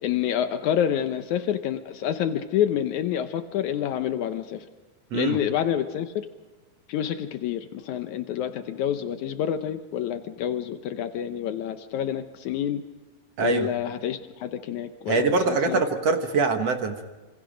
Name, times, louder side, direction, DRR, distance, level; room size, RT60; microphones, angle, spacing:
voice 1, 0.0-4.6 5.1-6.1 6.9-12.8 13.4-15.8, left 10 dB, 90° left, 8 dB, 1.6 m, -28 dB
voice 2, 13.4-13.7 15.1-17.0, right 4 dB, 60° right, 5 dB, 1.7 m, -23 dB
27.5 x 27.0 x 5.2 m, 1.2 s
omnidirectional pair, 4.6 m